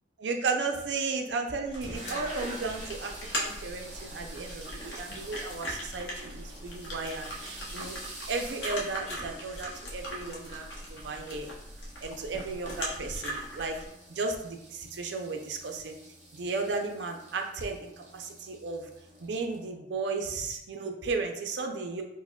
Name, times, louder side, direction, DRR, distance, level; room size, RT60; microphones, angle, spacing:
voice 1, 0.2-7.9 8.3-11.5 12.0-13.8 14.1-16.0 16.3-18.9 19.2-22.0, right 4 dB, 80° right, 4 dB, 0.5 m, -34 dB
sound 1, 1.6-13.9, equal, 90° left, 0.8 m, -40 dB
sound 2, 1.8-19.7, right 1 dB, 40° right, 0.8 m, -47 dB
4.6 x 2.1 x 2.2 m, 0.81 s
head